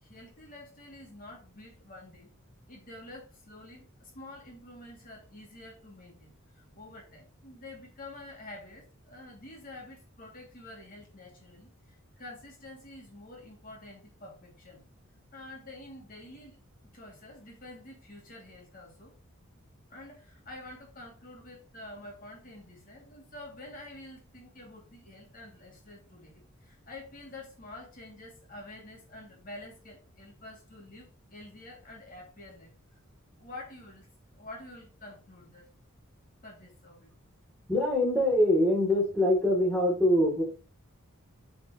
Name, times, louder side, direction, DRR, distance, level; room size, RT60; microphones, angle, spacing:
voice 1, 0.0-2.3 2.7-14.9 15.3-16.6 16.9-19.1 19.9-32.8 33.4-34.1 34.3-35.7 36.4-37.1, left 2 dB, 40° left, -1 dB, 2.7 m, -48 dB
voice 2, 37.7-40.4, left 1 dB, 5° left, -3 dB, 3.2 m, -24 dB
7.7 x 5.1 x 3.1 m, 0.34 s
head